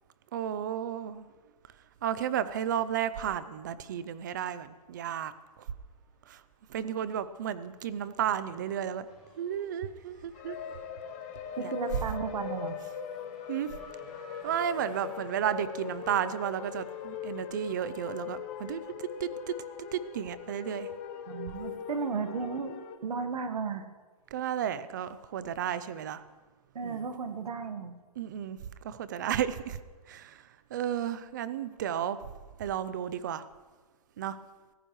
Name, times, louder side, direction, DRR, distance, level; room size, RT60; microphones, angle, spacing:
voice 1, 0.3-1.3 2.0-5.7 6.3-6.4 6.7-9.1 9.4-10.6 11.6-11.7 13.5-13.8 14.4-20.9 24.3-26.2 26.8-27.1 28.2-29.8 30.1-32.2 32.6-33.5 34.2-34.4, right 9 dB, 30° right, 15 dB, 0.5 m, -33 dB
Race car auto racing / Accelerating revving vroom, 5.4-6.3 6.6-20.3, equal, 5° right, 3.7 m, -57 dB
sound 1, 10.3-23.0, left 8 dB, 25° left, 0.8 m, -41 dB
voice 2, 11.5-12.8 21.3-23.9 26.7-27.9, right 5 dB, 75° right, 8 dB, 1.5 m, -34 dB
23.5 x 15.0 x 3.2 m, 1.4 s
hypercardioid pair, 170°, 20 cm